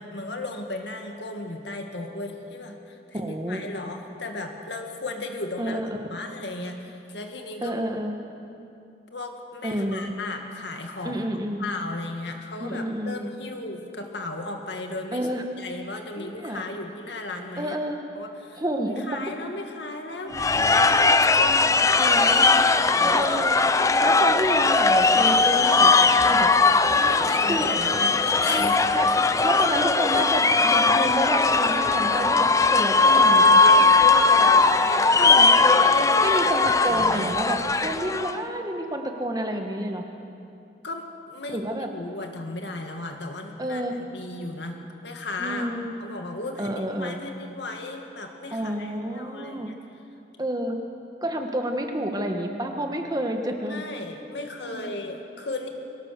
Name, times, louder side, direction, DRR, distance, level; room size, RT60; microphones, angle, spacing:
voice 1, 0.0-5.8 6.1-7.8 9.1-11.2 11.6-15.3 15.6-17.8 18.2-23.3 26.9-28.9 34.1-35.3 35.9-36.5 36.8-37.3 40.8-41.6 41.9-45.7 46.0-49.8 53.7-55.7, left 2 dB, 70° left, 4 dB, 2.1 m, -35 dB
voice 2, 3.1-3.6 5.6-6.1 7.6-8.2 9.6-10.1 11.0-11.7 12.6-13.3 15.1-15.4 16.2-16.6 17.6-18.0 18.6-19.2 20.2-20.6 22.0-22.5 23.0-23.6 24.0-26.5 27.2-27.7 28.5-29.1 29.4-33.6 35.2-35.5 36.2-40.0 41.5-41.9 43.6-43.9 45.4-45.9 46.6-47.2 48.5-49.7 50.4-50.8 51.2-53.8 54.6-54.9, right 1 dB, 20° right, 4 dB, 1.5 m, -29 dB
sound 1, 20.3-38.4, left 3 dB, 15° left, 0.5 m, -19 dB
23.0 x 18.5 x 6.8 m, 2.6 s
head